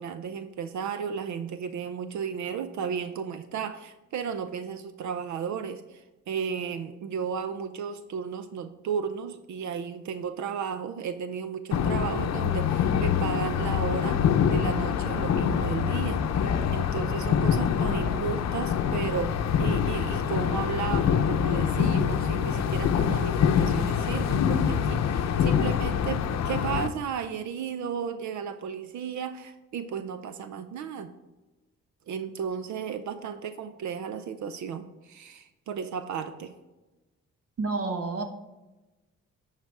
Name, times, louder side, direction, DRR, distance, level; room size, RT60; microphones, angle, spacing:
voice 1, 0.0-31.1 32.1-36.5, right 7 dB, 70° right, 10 dB, 0.7 m, -34 dB
sound 1, 11.7-26.9, left 8 dB, 60° left, 0.7 m, -25 dB
voice 2, 37.6-38.2, right 3 dB, 50° right, 7 dB, 1.3 m, -29 dB
10.5 x 4.1 x 4.7 m, 1.1 s
cardioid pair, 90°, 30 cm